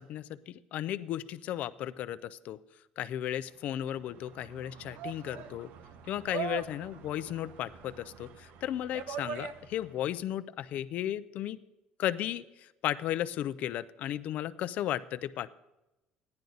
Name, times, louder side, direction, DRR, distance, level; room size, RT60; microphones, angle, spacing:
voice 1, 0.0-2.6 3.0-5.7 6.1-11.6 12.0-15.5, left 12 dB, 60° left, 16 dB, 0.4 m, -35 dB
sound 1, 3.7-10.0, right 8 dB, 70° right, 0.7 m, -42 dB
14.5 x 10.5 x 4.0 m, 0.98 s
cardioid pair, 125°, 3 cm